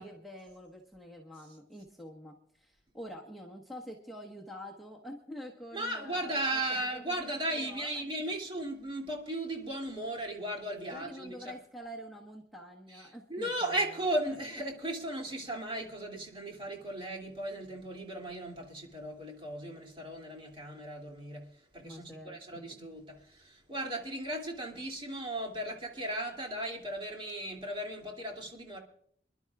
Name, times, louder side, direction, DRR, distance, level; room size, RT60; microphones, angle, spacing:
voice 1, 0.0-8.0 10.9-13.8 21.8-22.7, equal, ahead, -1 dB, 1.2 m, -47 dB
voice 2, 5.7-11.4 12.9-28.8, right 1 dB, 30° right, 0 dB, 2.6 m, -36 dB
27.5 x 11.5 x 2.4 m, 0.66 s
head